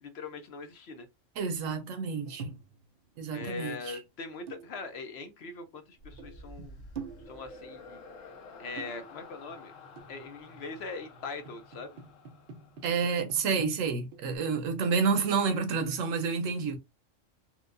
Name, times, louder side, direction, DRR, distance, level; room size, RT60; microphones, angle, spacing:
voice 1, 0.0-1.1 3.3-6.8 7.3-8.1 8.6-9.7 10.1-12.0, left 4 dB, 60° left, 0.8 m, -41 dB
voice 2, 1.4-2.5 3.2-4.0 6.6-6.7 12.8-16.8, right 5 dB, 85° right, 1.1 m, -29 dB
sound 1, 2.3-2.9 3.1-4.1 4.5-5.2 5.8-5.9 6.1-6.7 7.0-7.7 8.6-9.5 10.0-10.5 11.2-14.4, right 5 dB, 55° right, 0.6 m, -46 dB
sound 2, 6.0-13.4, left 3 dB, 80° left, 1.2 m, -50 dB
4.4 x 2.2 x 2.5 m
omnidirectional pair, 1.3 m